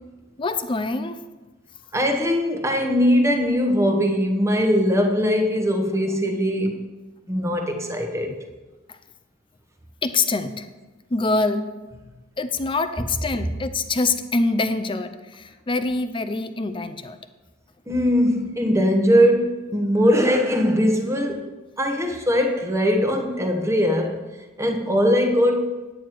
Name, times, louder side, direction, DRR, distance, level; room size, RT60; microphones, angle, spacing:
voice 1, 0.4-1.2 8.3-8.4 8.9-9.0 10.0-10.7 11.1-11.7 12.4-17.2, left 3 dB, 25° left, 10 dB, 0.5 m, -25 dB
voice 2, 1.9-6.8 7.3-8.3 17.9-21.4 21.8-24.2 24.6-25.7, equal, 15° right, 4 dB, 1.0 m, -20 dB
9.2 x 9.2 x 4.6 m, 1.2 s
head